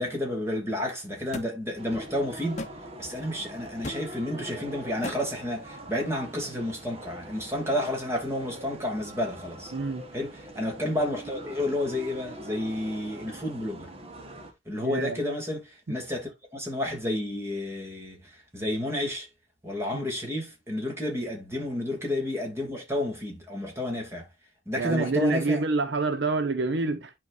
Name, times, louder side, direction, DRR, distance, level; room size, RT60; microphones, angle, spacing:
voice 1, 0.0-2.6 3.0-9.7 10.1-13.9 14.7-19.3 19.6-24.2 24.7-25.6, left 1 dB, 15° right, 2.8 m, -31 dB
sound 1, 1.3-1.5 2.6-2.7 3.8-4.0 5.0-5.2, left 2 dB, 40° left, 0.9 m, -34 dB
sound 2, 1.8-14.5, right 1 dB, 30° right, 1.4 m, -43 dB
voice 2, 9.7-10.0 14.8-15.2 19.9-20.0 24.8-27.1, right 3 dB, 65° right, 0.7 m, -27 dB
10.5 x 4.7 x 2.6 m
head